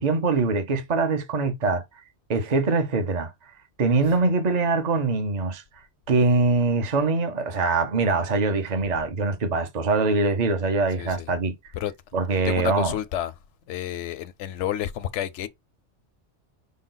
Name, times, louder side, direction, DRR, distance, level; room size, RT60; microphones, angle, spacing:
voice 1, 0.0-1.8 2.3-3.3 3.8-5.6 6.1-11.5 12.1-12.9, right 3 dB, 40° right, 0.8 m, -23 dB
voice 2, 11.0-11.3 11.7-11.9 12.4-13.3 13.7-15.5, left 11 dB, 80° left, 0.9 m, -30 dB
5.3 x 2.2 x 3.8 m
omnidirectional pair, 1.2 m